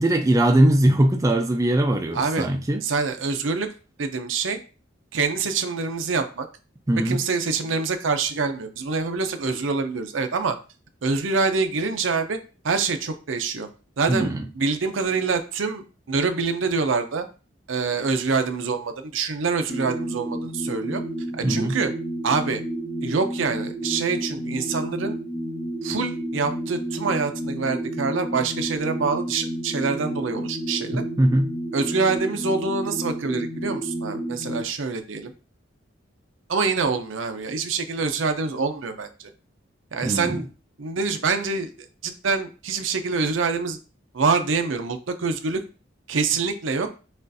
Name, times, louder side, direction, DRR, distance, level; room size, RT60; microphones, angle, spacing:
voice 1, 0.0-2.8 6.9-7.2 14.1-14.4 21.4-21.8 30.9-31.5 40.0-40.4, right 1 dB, 15° right, 0.4 m, -20 dB
voice 2, 2.1-2.5 2.8-3.7 4.0-4.6 5.1-6.5 7.0-10.6 11.0-12.4 12.6-13.7 14.0-17.3 17.7-21.0 21.3-21.9 22.2-22.6 23.0-25.2 25.8-31.0 31.7-35.3 36.5-39.3 39.9-40.5 40.8-41.7 42.0-43.8 44.1-45.6 46.1-46.9, right 4 dB, 80° right, 0.6 m, -25 dB
sound 1, 19.7-34.6, right 1 dB, 65° left, 1.4 m, -31 dB
6.2 x 2.4 x 2.6 m
head